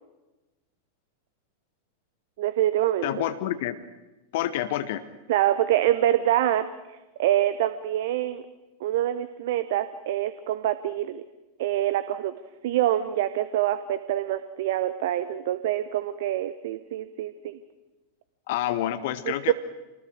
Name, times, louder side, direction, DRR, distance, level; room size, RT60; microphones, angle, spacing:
voice 1, 2.4-3.3 5.3-8.4 8.8-11.2 11.6-12.3 12.6-17.6 19.3-19.5, right 12 dB, 55° right, 13 dB, 0.8 m, -25 dB
voice 2, 3.0-3.8 4.3-5.0 18.5-19.5, left 12 dB, 50° left, 11 dB, 0.9 m, -28 dB
26.5 x 20.0 x 6.4 m, 1.1 s
figure-of-eight pair, 90°, 0 cm